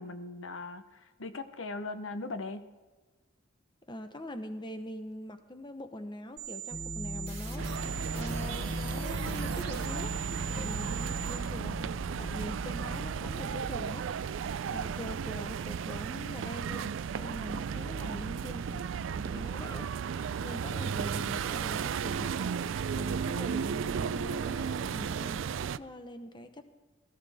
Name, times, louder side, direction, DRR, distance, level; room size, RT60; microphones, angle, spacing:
voice 1, 0.0-2.7 12.4-12.5, left 3 dB, 80° left, 9 dB, 0.8 m, -39 dB
voice 2, 3.9-7.8 8.1-10.2 10.5-14.1 14.7-19.9 20.4-22.6 22.9-26.6, left 1 dB, 25° left, 8 dB, 0.9 m, -43 dB
sound 1, 6.4-11.4, right 10 dB, 35° right, 2.7 m, -42 dB
sound 2, 6.7-13.9, equal, ahead, 0.5 m, -39 dB
sound 3, 7.6-25.8, right 7 dB, 75° right, 0.4 m, -34 dB
17.0 x 14.0 x 3.5 m, 1.3 s
head